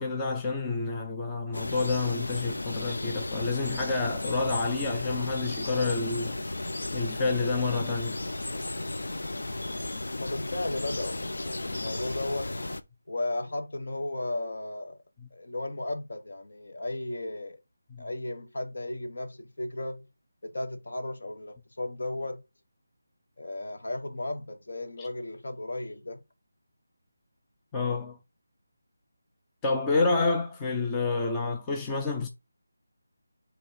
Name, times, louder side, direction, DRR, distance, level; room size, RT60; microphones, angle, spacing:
voice 1, 0.0-6.4 6.9-8.2 17.9-18.0 25.0-25.1 27.7-28.2 29.6-32.3, left 3 dB, 10° left, 0.4 m, -29 dB
sound 1, 1.5-12.8, left 2 dB, 80° left, 0.8 m, -34 dB
voice 2, 10.1-12.6 13.1-15.0 15.3-17.6 18.0-20.1 20.4-22.4 23.4-26.2, left 2 dB, 55° left, 1.3 m, -35 dB
7.8 x 3.3 x 4.0 m
figure-of-eight pair, 175°, 0 cm